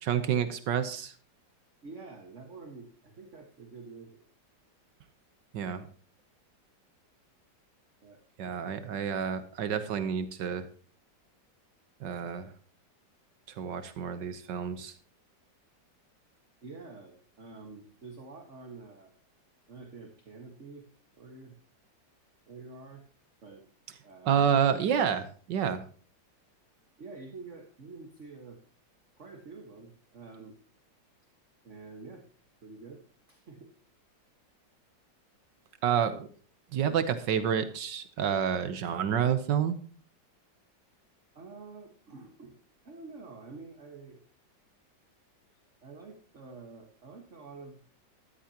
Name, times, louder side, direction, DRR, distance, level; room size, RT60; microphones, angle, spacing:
voice 1, 0.0-1.1 5.5-5.9 8.4-10.7 12.0-12.5 13.6-14.9 24.2-25.8 35.8-36.3 36.7-39.7, right 8 dB, 75° right, 11 dB, 1.6 m, -29 dB
voice 2, 1.8-4.2 8.0-8.2 16.6-19.1 19.7-20.9 21.2-21.5 22.5-23.0 23.4-23.6 24.0-24.4 27.0-28.6 29.2-30.6 31.6-32.3 32.6-33.0 33.3-33.7 41.4-42.6 42.8-44.2 45.5-48.0, right 3 dB, 40° right, 4 dB, 1.8 m, -48 dB
13.5 x 13.0 x 2.9 m, 0.42 s
omnidirectional pair, 2.0 m